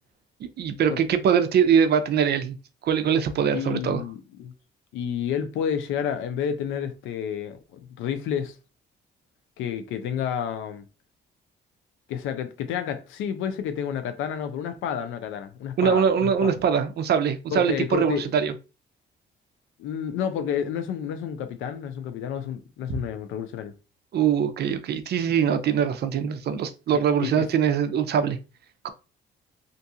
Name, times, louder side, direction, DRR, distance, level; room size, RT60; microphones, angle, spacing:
voice 1, 0.6-2.6 2.8-4.0 15.8-18.5 22.9-23.0 24.1-28.4 28.8-28.9, right 7 dB, 55° right, 0.4 m, -22 dB
voice 2, 3.5-4.5 4.9-8.6 9.6-10.9 12.1-16.5 17.5-18.3 19.8-23.7 26.9-27.5, left 8 dB, 85° left, 0.5 m, -30 dB
2.5 x 2.3 x 2.7 m
cardioid pair, 90°, 20 cm